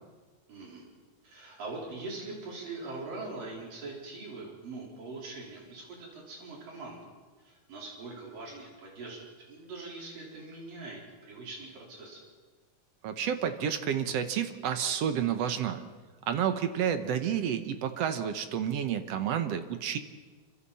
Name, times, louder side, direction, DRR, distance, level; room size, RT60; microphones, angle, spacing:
voice 1, 0.5-0.8 1.2-7.0 7.4-12.2, right 3 dB, 85° right, -3 dB, 6.0 m, -42 dB
voice 2, 13.0-15.8 16.3-20.0, right 8 dB, 65° right, 8 dB, 1.7 m, -30 dB
27.5 x 25.0 x 4.2 m, 1.3 s
omnidirectional pair, 3.8 m